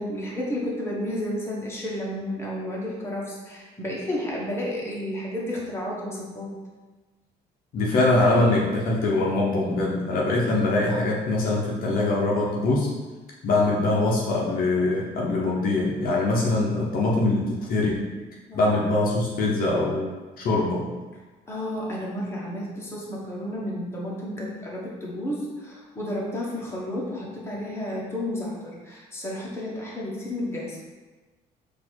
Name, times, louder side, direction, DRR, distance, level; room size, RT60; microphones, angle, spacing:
voice 1, 0.0-6.6 18.5-18.7 21.5-30.8, left 1 dB, 15° left, -5 dB, 1.2 m, -32 dB
voice 2, 7.7-12.9 13.4-18.0 18.5-20.9, left 2 dB, 60° left, -3 dB, 0.8 m, -23 dB
4.2 x 2.7 x 4.5 m, 1.3 s
cardioid pair, 110°, 17 cm